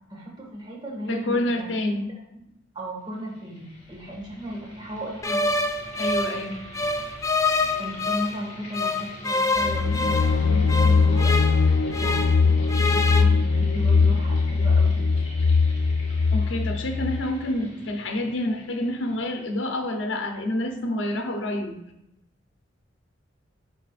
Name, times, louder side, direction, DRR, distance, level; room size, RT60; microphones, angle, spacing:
voice 1, 0.1-2.0 2.3-2.4 2.7-5.5 7.8-11.3 12.0-15.1, equal, 25° right, -3 dB, 1.8 m, -35 dB
voice 2, 1.1-2.1 5.9-6.6 16.3-21.8, left 1 dB, 75° left, 4 dB, 0.8 m, -28 dB
sound 1, 3.1-19.8, left 1 dB, 35° left, 1.7 m, -45 dB
sound 2, 5.2-8.4 8.7-12.4 12.7-13.2, left 3 dB, 15° left, 0.3 m, -26 dB
sound 3, 9.6-17.3, left 4 dB, 90° left, 0.4 m, -21 dB
10.5 x 4.1 x 2.5 m, 0.81 s
head